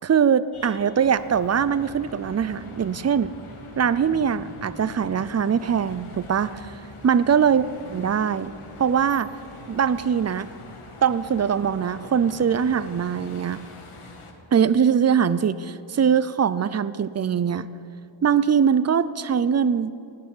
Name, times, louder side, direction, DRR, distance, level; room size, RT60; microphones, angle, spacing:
voice 1, 0.0-3.3 3.8-6.7 7.0-7.6 7.9-8.5 8.8-9.3 9.7-10.5 11.0-13.6 14.5-17.7 18.2-19.9, right 7 dB, 35° right, 15 dB, 0.5 m, -22 dB
sound 1, 0.5-14.3, left 2 dB, 85° left, 1.7 m, -43 dB
17.0 x 6.8 x 9.4 m, 2.7 s
wide cardioid pair, 90°, 49 cm